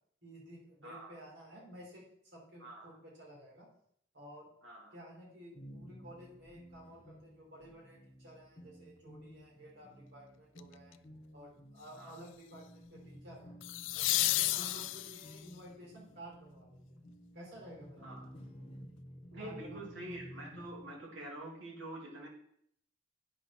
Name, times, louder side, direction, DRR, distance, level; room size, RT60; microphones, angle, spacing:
voice 1, 0.2-3.7 4.1-4.5 4.9-11.0 11.3-13.6 13.9-17.0 17.3-18.3 19.4-19.9, equal, 65° right, -3 dB, 3.7 m, -53 dB
voice 2, 0.8-1.2 2.6-3.0 4.6-4.9 12.0-12.1 14.5-14.9 18.0-18.3 19.3-22.3, right 1 dB, 85° right, -3 dB, 2.8 m, -46 dB
sound 1, 5.5-21.0, equal, 30° left, 1.2 m, -54 dB
sound 2, 10.6-10.9 13.6-15.5 18.4-18.5, left 17 dB, 85° left, 0.3 m, -32 dB
9.3 x 5.2 x 5.7 m, 0.68 s
head